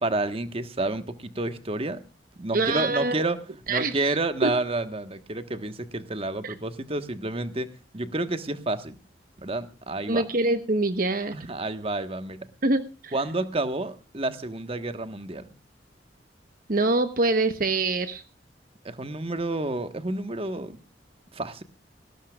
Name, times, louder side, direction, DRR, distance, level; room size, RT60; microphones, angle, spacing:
voice 1, 0.0-2.0 2.4-3.4 3.7-9.0 9.4-10.2 11.3-12.5 13.1-15.5 18.8-20.8 21.3-21.6, right 2 dB, 35° right, 10 dB, 1.3 m, -30 dB
voice 2, 2.5-3.2 3.7-4.2 4.4-4.5 6.4-6.5 10.1-11.4 12.6-13.1 16.7-18.2, right 2 dB, 50° right, 10 dB, 1.0 m, -25 dB
19.5 x 17.5 x 2.4 m, 0.32 s
head